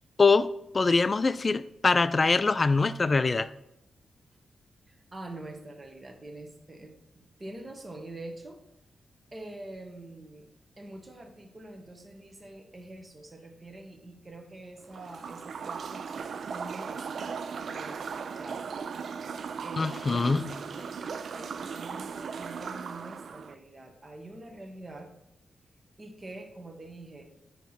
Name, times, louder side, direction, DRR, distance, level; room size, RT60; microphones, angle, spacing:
voice 1, 0.7-3.5 19.8-20.4, left 4 dB, 35° left, 14 dB, 0.3 m, -23 dB
voice 2, 4.9-7.0 7.4-8.6 9.3-10.5 10.8-16.1 16.5-18.7 19.6-25.1 26.0-27.3, right 2 dB, 30° right, 4 dB, 1.2 m, -45 dB
sound 1, 14.9-23.6, right 6 dB, 70° right, 0.3 m, -37 dB
9.1 x 3.1 x 5.6 m, 0.81 s
cardioid pair, 80°, 0 cm